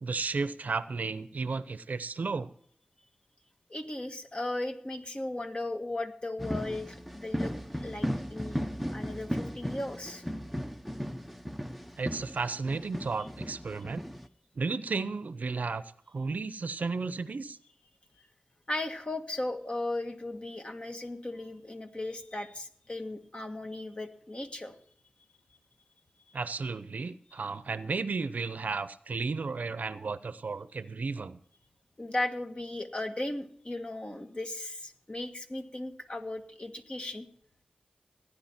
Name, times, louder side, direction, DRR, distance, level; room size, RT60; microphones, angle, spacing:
voice 1, 0.0-2.5 12.0-14.1 14.5-17.6 26.3-31.4, right 4 dB, 70° right, 14 dB, 0.7 m, -33 dB
voice 2, 3.7-7.5 7.8-10.2 18.7-24.7 32.0-37.3, left 2 dB, 40° left, 5 dB, 1.6 m, -36 dB
sound 1, 6.4-14.3, equal, ahead, 0.8 m, -36 dB
16.0 x 10.0 x 4.4 m, 0.62 s
cardioid pair, 55°, 3 cm